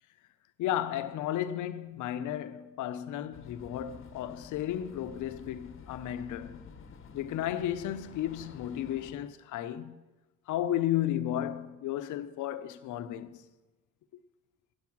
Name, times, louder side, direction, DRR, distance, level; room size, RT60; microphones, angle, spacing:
voice 1, 0.6-6.7 7.1-10.0 10.5-13.4, left 11 dB, 80° left, 0.6 m, -33 dB
sound 1, 3.3-9.1, left 6 dB, 45° left, 0.9 m, -50 dB
10.5 x 6.6 x 5.9 m
cardioid pair, 90°, 30 cm